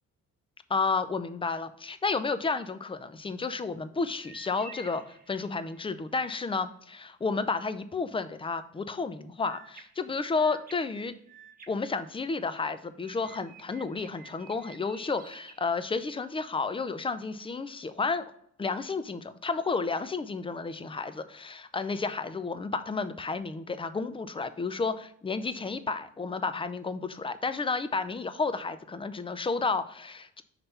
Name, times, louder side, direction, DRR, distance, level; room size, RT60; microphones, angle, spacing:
voice 1, 0.7-11.1 11.7-18.2 18.6-30.4, left 4 dB, 20° left, 12 dB, 0.5 m, -31 dB
sound 1, 4.2-5.9 9.4-12.6 13.0-16.4, right 4 dB, 30° right, 1.0 m, -52 dB
5.8 x 3.3 x 5.6 m, 0.69 s
cardioid pair, 90°, 30 cm